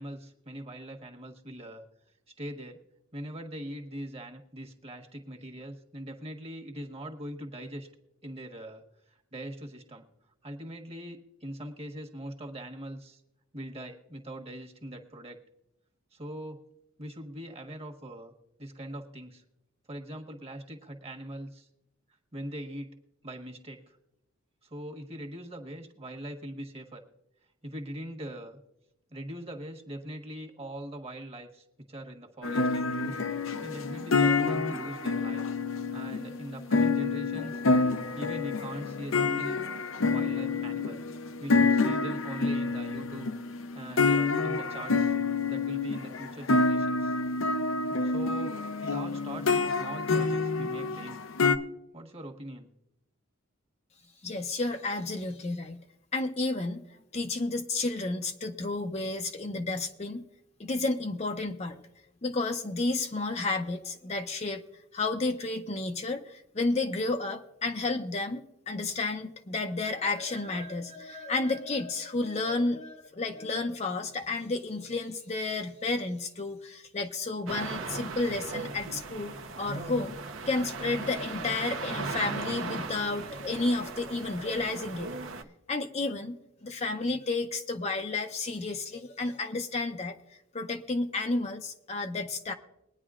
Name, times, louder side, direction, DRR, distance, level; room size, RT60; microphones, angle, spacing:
voice 1, 0.0-1.9 2.4-2.8 3.1-7.9 8.2-10.0 10.4-13.2 13.5-15.4 16.1-16.6 17.0-18.3 18.6-19.4 19.9-21.7 22.3-23.0 23.2-24.0 24.7-27.0 27.6-28.6 29.1-33.2 33.6-35.4 35.9-39.6 40.1-41.0 41.4-43.3 43.7-45.2 45.5-47.2 48.0-48.5 48.8-51.2 51.9-52.7, right 1 dB, 30° right, 2 dB, 1.4 m, -41 dB
sound 1, 32.4-51.6, left 3 dB, 80° left, 0.7 m, -28 dB
voice 2, 54.2-55.8 56.1-60.2 60.6-61.8 62.2-64.6 64.9-80.1 80.5-85.1 85.7-90.2 90.5-92.5, left 3 dB, 35° left, 5 dB, 0.6 m, -31 dB
sound 2, 77.5-85.4, right 3 dB, 75° right, 0.9 m, -38 dB
21.5 x 9.8 x 2.5 m, 0.84 s
head